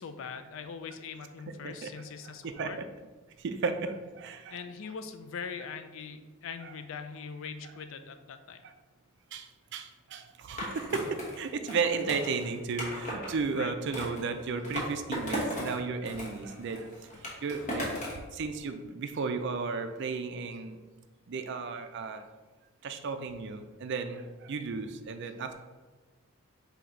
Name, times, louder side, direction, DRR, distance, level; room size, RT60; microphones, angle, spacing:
voice 1, 0.0-2.8 4.5-8.6 13.5-13.7, left 6 dB, 60° left, 9 dB, 0.3 m, -41 dB
voice 2, 2.2-2.9 3.4-4.6 6.6-6.7 8.6-8.7 9.3-16.9 17.4-17.9 18.3-20.8 21.3-22.2 22.8-25.5, right 4 dB, 50° right, 8 dB, 0.4 m, -34 dB
Skateboard, 10.6-13.3 13.9-15.8 16.0-18.3, equal, 35° left, 0.9 m, -36 dB
4.0 x 2.8 x 4.5 m, 1.2 s
head